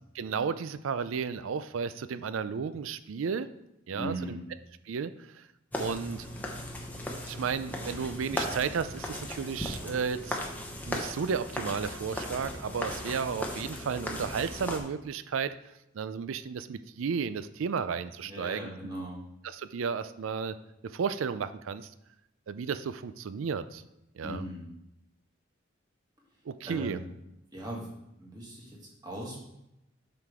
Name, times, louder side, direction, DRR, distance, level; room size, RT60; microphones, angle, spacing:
voice 1, 0.1-3.5 3.9-4.4 4.9-5.5 5.8-6.3 7.3-10.4 10.8-15.6 15.9-18.7 19.4-20.6 20.8-21.9 22.5-23.8 24.2-24.5 26.5-27.0, right 6 dB, 75° right, 13 dB, 0.4 m, -33 dB
voice 2, 3.9-4.5 18.2-19.2 24.2-24.7 26.6-27.1 27.5-27.9 28.2-29.4, equal, 20° right, -3 dB, 1.9 m, -39 dB
sound 1, 5.7-14.8, left 1 dB, 10° left, 0.9 m, -37 dB
7.8 x 5.9 x 3.6 m, 0.85 s
head